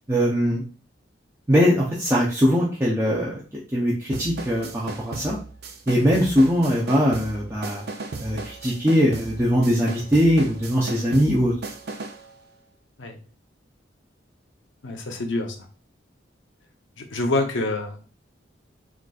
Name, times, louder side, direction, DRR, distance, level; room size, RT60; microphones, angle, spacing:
voice 1, 0.1-0.6 1.5-3.4 3.7-5.4 5.9-7.8 8.2-11.5, equal, 15° right, -5 dB, 0.5 m, -21 dB
sound 1, 4.1-12.3, right 3 dB, 60° right, 0.5 m, -36 dB
voice 2, 14.8-15.6 17.0-18.1, left 2 dB, 85° left, 4 dB, 0.7 m, -26 dB
3.8 x 2.4 x 2.3 m, 0.37 s
head